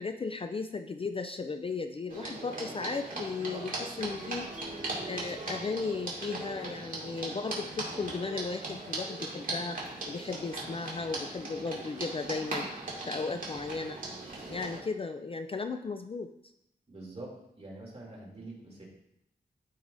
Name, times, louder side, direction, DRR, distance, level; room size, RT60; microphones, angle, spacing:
voice 1, 0.0-4.5 5.1-9.8 10.1-12.7 13.1-14.0 14.5-16.3, left 4 dB, 35° left, 7 dB, 0.4 m, -35 dB
sound 1, 2.1-14.8, right 2 dB, 55° right, 2.1 m, -39 dB
voice 2, 16.9-18.8, right 2 dB, 35° right, -4 dB, 2.6 m, -45 dB
14.0 x 4.7 x 2.6 m, 0.82 s
wide cardioid pair, 130°, 17 cm